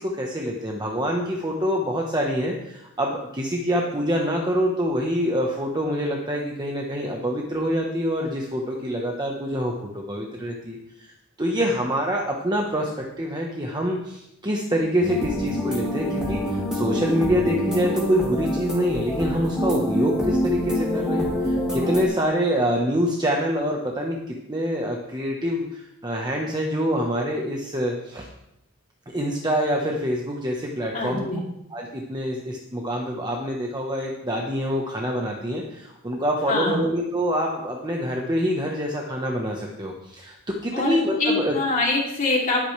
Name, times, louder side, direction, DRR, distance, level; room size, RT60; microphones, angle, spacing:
voice 1, 0.0-11.1 11.4-12.9 13.2-28.3 29.1-31.3 31.7-40.4 40.6-41.6, equal, 20° right, 0 dB, 1.2 m, -26 dB
sound 1, 15.0-22.0, equal, 5° right, 2.8 m, -26 dB
voice 2, 30.9-31.4 36.5-36.8 40.7-42.7, left 2 dB, 35° left, -3 dB, 3.2 m, -24 dB
19.5 x 8.8 x 3.4 m, 0.83 s
head